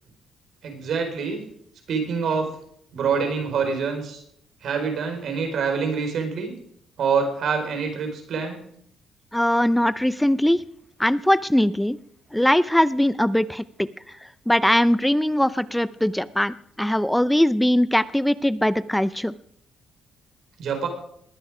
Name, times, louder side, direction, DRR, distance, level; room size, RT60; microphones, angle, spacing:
voice 1, 0.6-1.4 1.9-2.5 2.9-4.2 4.6-6.5 7.0-8.6 20.6-20.9, right 5 dB, 65° right, 5 dB, 4.5 m, -25 dB
voice 2, 9.3-10.6 11.0-12.0 12.3-13.9 14.5-19.3, left 1 dB, 5° left, 16 dB, 0.6 m, -21 dB
20.5 x 9.7 x 5.0 m, 0.70 s
cardioid pair, 90°, 0 cm